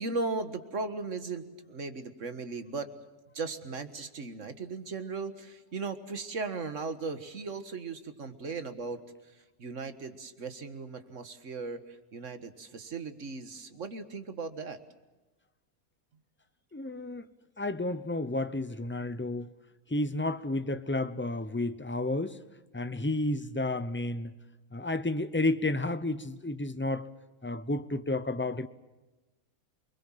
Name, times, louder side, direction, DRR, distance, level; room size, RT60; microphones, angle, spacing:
voice 1, 0.0-2.9 3.3-9.0 9.6-14.8, right 4 dB, 50° right, 1.9 m, -37 dB
voice 2, 16.7-17.3 17.6-19.5 19.9-22.4 22.7-24.3 24.7-27.1 27.4-28.7, left 2 dB, 15° left, 0.4 m, -31 dB
28.5 x 21.5 x 7.5 m
omnidirectional pair, 1.6 m